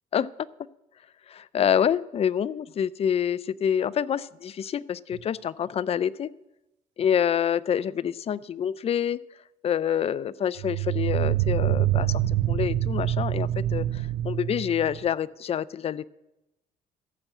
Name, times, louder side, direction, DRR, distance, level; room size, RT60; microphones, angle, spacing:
voice 1, 1.3-6.3 7.0-9.2 9.6-12.2 12.5-16.1, left 9 dB, 35° left, 18 dB, 0.4 m, -27 dB
sound 1, 5.1-5.2 10.6-15.1, right 13 dB, 90° right, 0.6 m, -26 dB
14.5 x 6.1 x 7.9 m, 0.95 s
cardioid pair, 110°, 17 cm